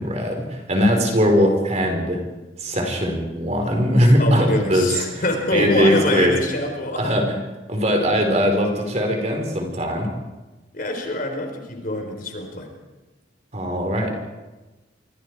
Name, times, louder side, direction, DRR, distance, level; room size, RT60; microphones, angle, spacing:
voice 1, 0.0-2.2 2.6-5.2 5.5-6.3 7.0-7.4 7.7-10.1 13.5-14.1, equal, 35° right, 3 dB, 4.5 m, -20 dB
voice 2, 4.2-7.0 10.7-12.7, left 1 dB, 45° left, 3 dB, 4.4 m, -25 dB
28.0 x 24.5 x 4.8 m, 1.2 s
head